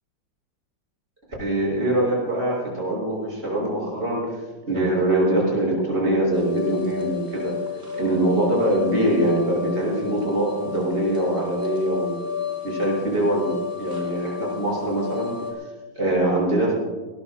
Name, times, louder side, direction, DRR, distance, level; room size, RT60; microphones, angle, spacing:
voice 1, 1.4-4.2 4.7-7.5 8.0-12.1 12.6-15.3 15.9-16.7, right 1 dB, 30° right, -5 dB, 6.0 m, -23 dB
sound 1, 6.3-15.5, left 7 dB, 10° right, 3.6 m, -32 dB
21.0 x 19.5 x 2.2 m, 1.4 s
omnidirectional pair, 2.1 m